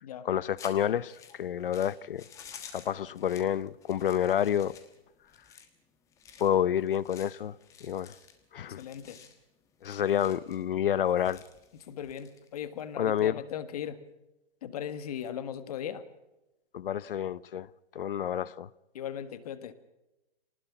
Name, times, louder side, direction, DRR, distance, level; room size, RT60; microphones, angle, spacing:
voice 1, 0.2-2.2 2.7-4.7 6.4-7.6 7.8-8.1 8.5-8.8 9.8-11.4 13.0-13.4 16.7-17.7 17.9-18.7, left 10 dB, 60° left, 0.8 m, -29 dB
sound 1, 0.6-12.9, left 7 dB, 10° left, 1.3 m, -53 dB
voice 2, 8.7-9.2 11.9-14.0 14.6-16.0 18.9-19.7, left 9 dB, 40° left, 1.6 m, -38 dB
25.5 x 19.5 x 6.0 m
hypercardioid pair, 170°, 31 cm